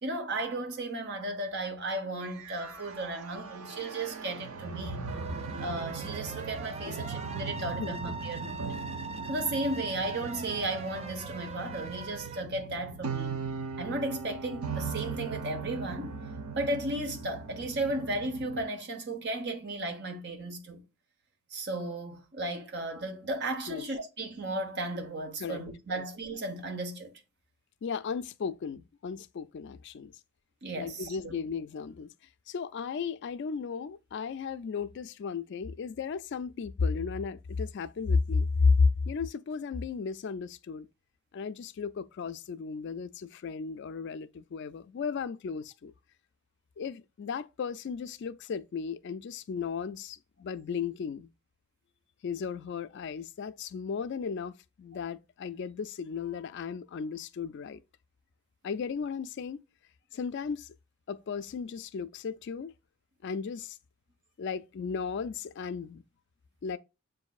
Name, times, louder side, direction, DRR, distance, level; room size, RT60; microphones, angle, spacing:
voice 1, 0.0-5.0 5.6-8.7 9.3-13.4 13.8-16.2 16.6-20.8 21.5-27.1 30.6-31.3, right 2 dB, 50° right, 0.9 m, -35 dB
sound 1, 2.2-18.6, right 4 dB, 80° right, 0.7 m, -39 dB
sound 2, 5.1-12.4, right 4 dB, 30° right, 0.4 m, -42 dB
voice 2, 27.8-30.1 30.8-32.1 32.5-40.9 41.3-45.9 46.8-51.3 52.2-57.8 58.6-59.6 60.1-60.7 61.1-62.7 63.2-63.8 64.4-66.0 66.6-66.8, left 5 dB, 55° left, 0.3 m, -34 dB
7.1 x 2.6 x 2.3 m
head